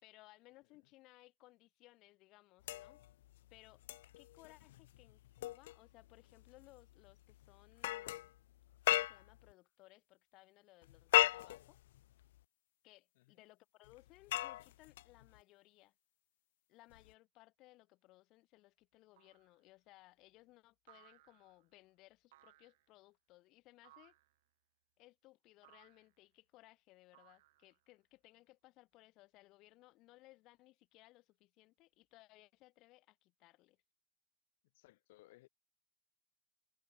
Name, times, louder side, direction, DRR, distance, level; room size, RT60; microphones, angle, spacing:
voice 1, 0.0-3.0 3.5-3.8 4.2-8.3 8.9-11.8 12.8-15.9 16.7-24.2 25.0-33.8, left 19 dB, 40° left, 5.2 m, -63 dB
sound 1, 2.6-9.5 10.8-12.4 13.9-15.4 16.9-17.1, left 15 dB, 80° left, 0.3 m, -38 dB
sound 2, 19.2-19.6 20.9-21.7 22.3-22.9 23.8-24.4 25.6-26.1 27.1-27.9, right 17 dB, 75° right, 4.9 m, -65 dB
voice 2, 34.7-35.5, left 19 dB, 65° left, 6.2 m, -64 dB
supercardioid pair, 155°, 0 cm